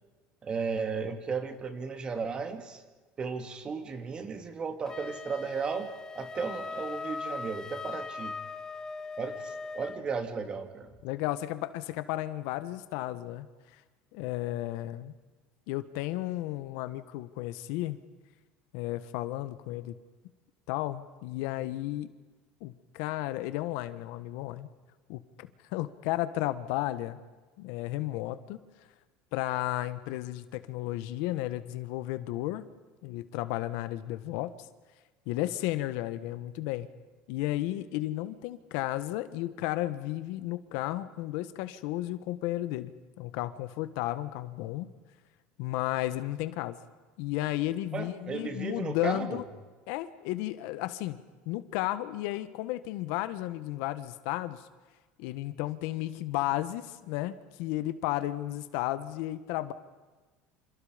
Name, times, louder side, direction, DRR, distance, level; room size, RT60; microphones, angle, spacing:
voice 1, 0.4-2.8 3.2-8.4 9.2-10.9 47.9-49.4, right 5 dB, 25° right, 7 dB, 2.5 m, -35 dB
Wind instrument woodwind instrument, 4.9-10.0, left 4 dB, 20° left, 1.0 m, -40 dB
voice 2, 11.0-13.8 14.1-15.1 15.7-18.0 18.7-20.0 20.7-22.1 22.6-24.7 25.1-27.2 27.6-28.6 29.3-32.6 33.0-34.7 35.2-36.9 37.3-44.9 45.6-46.8 47.2-49.4 49.9-54.7 55.2-59.7, left 15 dB, 75° left, 13 dB, 1.5 m, -33 dB
28.5 x 28.5 x 5.2 m, 1.3 s
cardioid pair, 145°, 4 cm